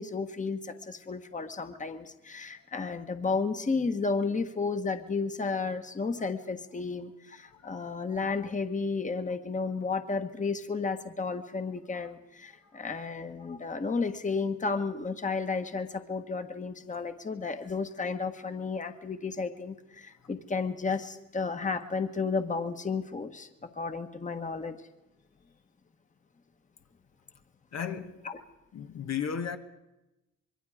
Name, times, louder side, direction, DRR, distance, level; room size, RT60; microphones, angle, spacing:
voice 1, 0.0-24.8 28.2-28.4, left 4 dB, 25° left, 1.5 m, -32 dB
voice 2, 27.7-28.1 28.7-29.6, left 7 dB, 60° left, 1.4 m, -34 dB
25.5 x 22.0 x 5.0 m
cardioid pair, 90°, 30 cm